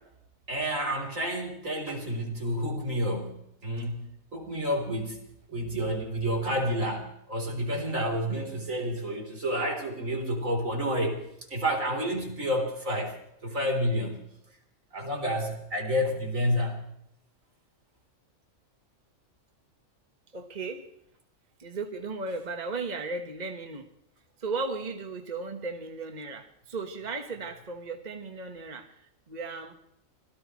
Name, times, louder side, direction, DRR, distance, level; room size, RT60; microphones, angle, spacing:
voice 1, 0.5-5.2 5.5-11.2 11.5-13.2 13.4-14.2 14.9-16.9, equal, 75° right, 1 dB, 4.2 m, -30 dB
voice 2, 20.3-20.9 21.6-23.9 24.4-29.7, right 3 dB, 35° right, 4 dB, 1.5 m, -36 dB
26.0 x 17.5 x 3.2 m, 0.75 s
omnidirectional pair, 1.4 m